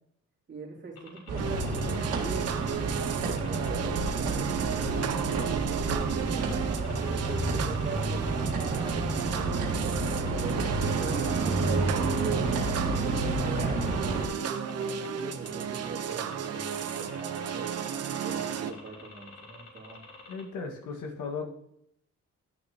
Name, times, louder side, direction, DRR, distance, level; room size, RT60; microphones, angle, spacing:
voice 1, 0.5-6.6 6.9-13.9 14.4-17.7 18.2-20.0, right 4 dB, 40° right, -2 dB, 2.6 m, -41 dB
sound 1, 1.0-20.4, left 4 dB, 55° left, 3.2 m, -49 dB
sound 2, 1.3-14.3, right 2 dB, 90° right, 1.7 m, -30 dB
sound 3, 1.4-18.7, right 8 dB, 55° right, 0.8 m, -33 dB
voice 2, 20.3-21.5, left 4 dB, 85° left, 3 dB, 1.7 m, -36 dB
11.0 x 6.5 x 2.9 m, 0.72 s
cardioid pair, 90°, 30 cm